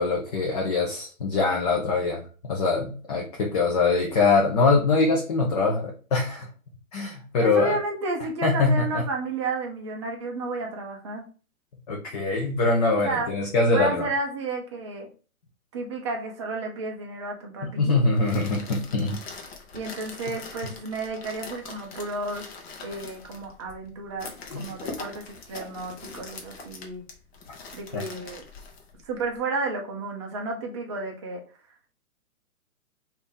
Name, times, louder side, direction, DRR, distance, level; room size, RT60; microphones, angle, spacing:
voice 1, 0.0-6.5 6.9-7.8 8.4-9.0 11.9-14.0 17.6-19.2 24.5-24.6 27.9-28.0, left 3 dB, 30° left, -1 dB, 0.5 m, -23 dB
voice 2, 7.4-11.3 13.0-13.3 13.7-15.1 15.7-18.0 19.7-22.5 22.8-27.0 27.7-28.4 29.1-31.4, right 3 dB, 20° right, 1 dB, 0.5 m, -32 dB
Rustling plastic, 18.0-29.4, left 4 dB, 45° left, 0.9 m, -42 dB
2.9 x 2.7 x 3.7 m, 0.37 s
hypercardioid pair, 140°, 43 cm